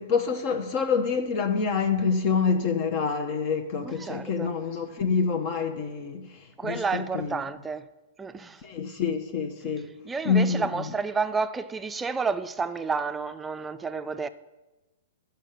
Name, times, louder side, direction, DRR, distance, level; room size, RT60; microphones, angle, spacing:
voice 1, 0.0-7.4 8.6-9.9 10.2-10.8, left 5 dB, 45° left, 0.9 m, -27 dB
voice 2, 3.8-4.5 6.6-7.8 8.2-8.6 10.0-14.3, right 4 dB, 10° right, 0.5 m, -30 dB
10.5 x 5.7 x 6.5 m
hypercardioid pair, 130°, 0 cm